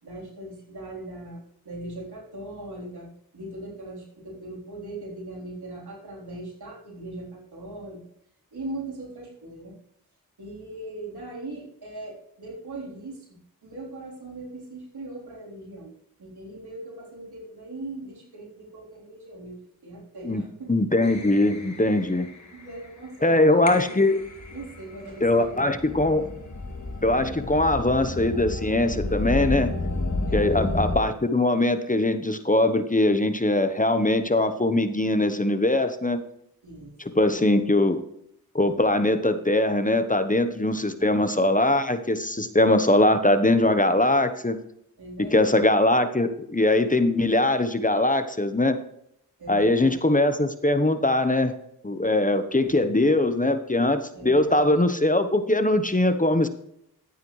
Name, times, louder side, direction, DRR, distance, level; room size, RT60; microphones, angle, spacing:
voice 1, 0.0-8.0 8.5-9.8 10.4-15.9 16.2-19.6 19.8-20.7 22.5-24.2 24.5-25.7 30.3-30.7 36.6-36.9 37.3-37.9 45.0-45.6 49.4-50.0 52.6-52.9 54.1-54.8, right 2 dB, 85° right, -3 dB, 3.9 m, -40 dB
voice 2, 20.7-22.3 23.2-24.2 25.2-26.3 27.0-29.7 30.3-36.2 37.0-38.0 38.5-44.6 45.2-48.8 49.5-51.5 51.8-56.5, left 1 dB, 20° left, 10 dB, 1.1 m, -21 dB
sound 1, 21.0-22.9 23.7-31.0, left 2 dB, 45° left, 2.0 m, -31 dB
12.0 x 9.2 x 3.2 m, 0.73 s
cardioid pair, 45°, 38 cm